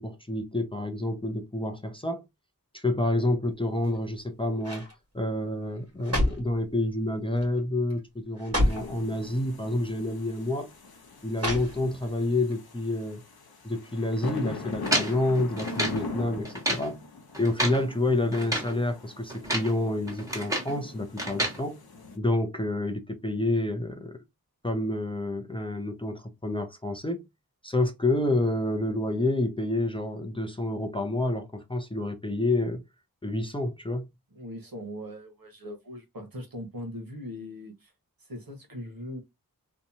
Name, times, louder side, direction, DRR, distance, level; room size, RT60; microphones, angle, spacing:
voice 1, 0.0-2.2 2.7-4.9 5.1-10.7 11.2-13.2 13.6-17.0 17.4-21.8 22.2-24.2 24.6-27.2 27.6-32.8 33.2-34.0, left 1 dB, 15° left, 0.5 m, -28 dB
sound 1, 3.7-4.2 4.6-4.9 5.7-6.6 7.4-7.6 7.9-8.0 8.4-8.9 9.9-10.0 11.3-12.1 12.5-12.6, left 1 dB, 40° right, 1.4 m, -29 dB
sound 2, 8.6-22.2, left 3 dB, 80° left, 0.7 m, -42 dB
sound 3, 14.9-16.0 16.4-16.9 17.3-17.8 18.3-18.7 19.3-19.7 20.1-20.8 21.2-21.6, right 1 dB, 10° right, 1.4 m, -30 dB
voice 2, 34.3-37.9 38.2-39.2, left 1 dB, 70° right, 1.0 m, -40 dB
2.8 x 2.2 x 2.6 m
wide cardioid pair, 50°, 36 cm